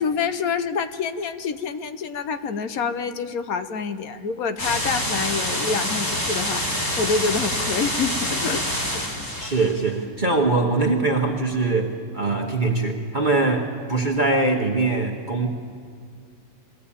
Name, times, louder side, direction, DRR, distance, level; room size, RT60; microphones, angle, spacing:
voice 1, 0.0-8.6 8.9-9.3, left 5 dB, 60° left, 10 dB, 1.2 m, -27 dB
sound 1, 4.6-9.8, left 1 dB, 35° left, 4.3 m, -26 dB
voice 2, 9.4-15.5, right 3 dB, 30° right, 1 dB, 1.4 m, -22 dB
22.0 x 17.0 x 8.6 m, 2.2 s
omnidirectional pair, 1.9 m